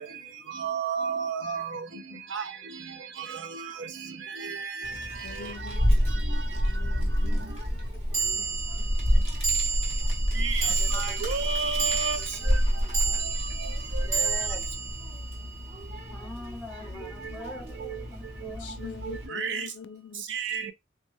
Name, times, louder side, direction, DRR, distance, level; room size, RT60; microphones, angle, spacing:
voice 1, 0.6-1.8 2.3-2.4 10.4-10.6 10.9-12.2 14.2-14.3 19.3-19.6 20.3-20.7, right 5 dB, 80° right, 0.5 m, -30 dB
voice 2, 1.9-3.2 4.9-9.3 17.1-18.0 18.5-20.2, left 6 dB, 75° left, 0.4 m, -46 dB
Child speech kid speaking, 4.8-19.3, equal, 35° right, 0.7 m, -29 dB
sound 1, 6.0-6.1 8.1-16.6, right 5 dB, 50° right, 1.1 m, -32 dB
voice 3, 10.4-11.6 14.0-14.6 16.1-19.0, left 1 dB, 5° left, 0.6 m, -43 dB
3.4 x 2.1 x 3.0 m
head